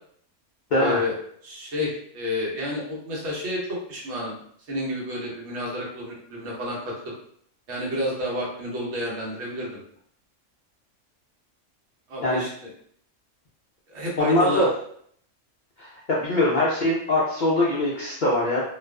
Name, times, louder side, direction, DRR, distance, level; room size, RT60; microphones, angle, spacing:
voice 1, 0.7-1.1 1.4-4.4 4.7-6.9 7.7-9.8 12.1-12.7 13.9-14.7, left 1 dB, 65° right, -4 dB, 1.1 m, -30 dB
voice 2, 14.2-14.7 15.8-18.6, left 1 dB, 75° left, -6 dB, 0.4 m, -22 dB
2.4 x 2.3 x 2.2 m, 0.64 s
omnidirectional pair, 1.3 m